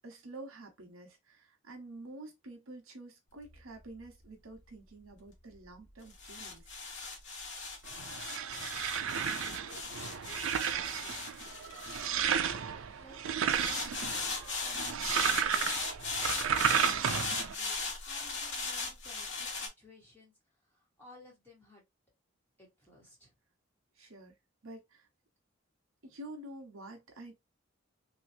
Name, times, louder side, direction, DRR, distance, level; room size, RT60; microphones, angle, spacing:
voice 1, 0.0-6.8 24.0-24.3 24.6-25.1 26.0-27.3, right 2 dB, 90° right, 1.1 m, -48 dB
sound 1, 3.4-12.8 13.5-19.7, left 4 dB, 60° left, 1.1 m, -38 dB
sound 2, 7.9-17.5, right 8 dB, 75° right, 0.4 m, -33 dB
voice 2, 8.3-12.2 12.7-16.0 16.4-17.8 18.0-20.3 20.6-21.8 22.6-23.3, left 1 dB, 10° left, 1.9 m, -59 dB
3.1 x 3.0 x 2.7 m
head